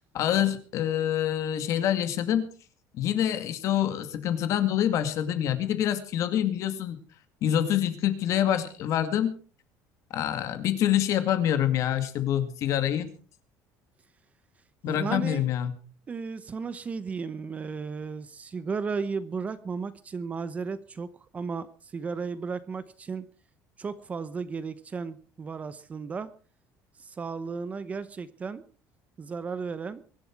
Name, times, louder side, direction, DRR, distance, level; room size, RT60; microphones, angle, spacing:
voice 1, 0.1-2.4 3.0-7.0 7.4-9.3 10.1-13.1 14.8-15.7, left 10 dB, 50° left, 10 dB, 2.2 m, -26 dB
voice 2, 14.8-15.5 16.1-21.1 21.3-23.3 23.8-26.3 27.0-28.6 29.2-30.0, right 5 dB, 20° right, 14 dB, 0.8 m, -34 dB
23.5 x 11.5 x 4.6 m, 0.39 s
cardioid pair, 175°, 7 cm